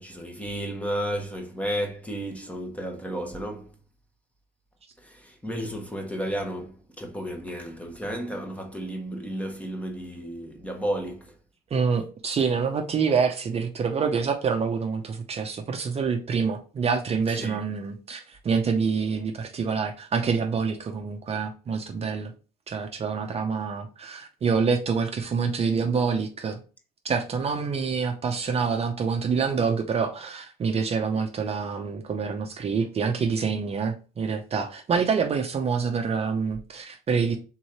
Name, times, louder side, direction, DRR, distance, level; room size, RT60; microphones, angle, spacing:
voice 1, 0.0-3.7 5.0-11.3 17.4-17.6, equal, 10° left, 1.0 m, -33 dB
voice 2, 11.7-22.3 22.7-26.6 27.0-37.4, right 5 dB, 35° right, 0.7 m, -26 dB
3.8 x 3.1 x 4.2 m
cardioid pair, 110°, 17 cm